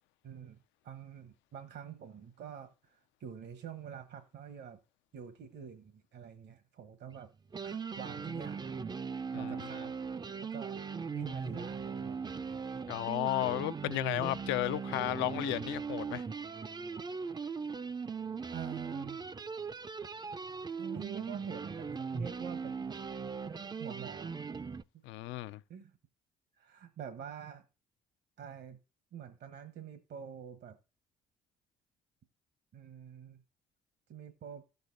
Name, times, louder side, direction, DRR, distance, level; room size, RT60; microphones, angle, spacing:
voice 1, 0.2-0.6 0.8-4.8 5.1-7.3 7.6-8.6 9.3-10.0 10.4-12.8 17.4-17.9 18.5-19.3 20.8-22.8 23.8-24.4 25.7-26.0 26.6-27.6 28.4-28.8 29.1-30.8 32.7-33.4 34.1-34.6, right 8 dB, 60° right, 1.1 m, -47 dB
sound 1, 7.1-7.2 7.5-24.8, right 5 dB, 20° right, 0.5 m, -39 dB
voice 2, 9.3-9.7 12.9-16.2 25.0-25.6, left 16 dB, 70° left, 0.5 m, -33 dB
16.5 x 6.6 x 2.6 m
hypercardioid pair, 45°, 20 cm